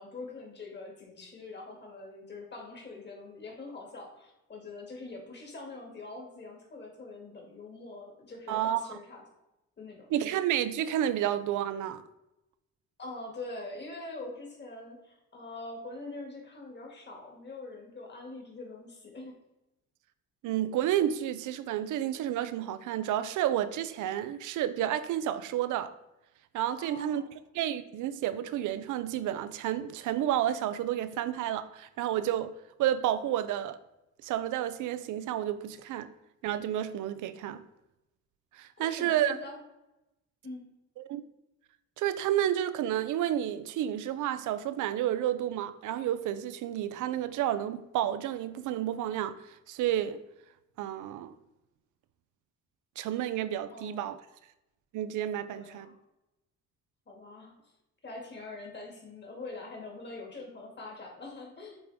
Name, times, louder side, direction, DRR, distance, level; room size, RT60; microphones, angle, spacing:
voice 1, 0.0-9.2 9.8-10.1 13.0-19.3 26.8-27.3 38.8-39.6 40.4-40.7 53.7-54.1 55.5-55.9 57.1-57.5 58.0-61.8, left 2 dB, 35° left, 2.3 m, -44 dB
voice 2, 8.5-9.0 10.1-12.0 20.4-25.9 26.5-27.2 27.5-32.5 32.8-33.8 34.2-36.1 36.4-37.6 38.5-39.4 41.0-41.2 42.0-50.2 50.8-51.3 53.0-54.2 54.9-55.9, right 11 dB, 80° right, 0.6 m, -30 dB
9.0 x 3.6 x 3.6 m
cardioid pair, 90°, 30 cm